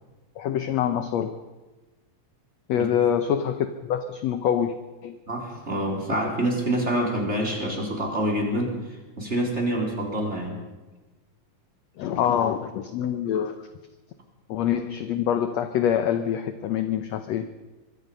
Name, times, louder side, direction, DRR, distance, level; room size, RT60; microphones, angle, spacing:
voice 1, 0.4-1.4 2.7-4.8 5.0-5.2 6.1-6.3 12.0-13.7 14.5-17.5, left 9 dB, 70° left, 9 dB, 1.7 m, -25 dB
voice 2, 5.3-10.6, right 1 dB, 20° right, 0 dB, 4.0 m, -27 dB
24.0 x 23.5 x 5.5 m, 1.2 s
omnidirectional pair, 3.9 m